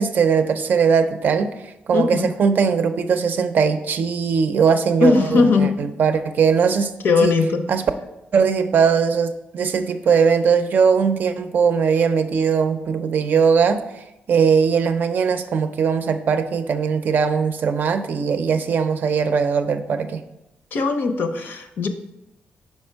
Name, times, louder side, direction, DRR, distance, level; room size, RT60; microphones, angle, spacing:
voice 1, 0.0-1.5 1.9-6.9 7.2-7.4 7.7-7.8 8.3-13.8 14.3-20.2, right 6 dB, 60° right, 9 dB, 0.5 m, -19 dB
voice 2, 1.9-2.3 5.0-5.7 7.0-7.6 20.7-21.9, left 4 dB, 70° left, 7 dB, 0.6 m, -19 dB
5.5 x 4.3 x 4.5 m, 0.90 s
wide cardioid pair, 130°, 4 cm